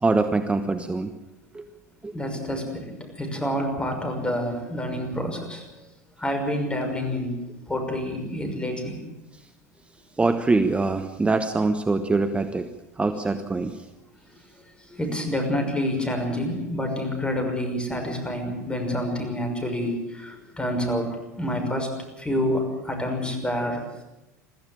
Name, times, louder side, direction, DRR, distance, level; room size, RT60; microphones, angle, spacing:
voice 1, 0.0-1.1 1.5-1.6 2.0-2.1 10.2-12.7 13.0-13.8, right 3 dB, 15° right, 8 dB, 1.2 m, -23 dB
voice 2, 2.1-5.8 6.2-7.4 7.7-9.0 14.9-21.1 21.4-21.9 22.2-24.0, left 1 dB, 10° left, 4 dB, 6.1 m, -28 dB
22.5 x 14.5 x 8.8 m, 0.98 s
hypercardioid pair, 80°, 9 cm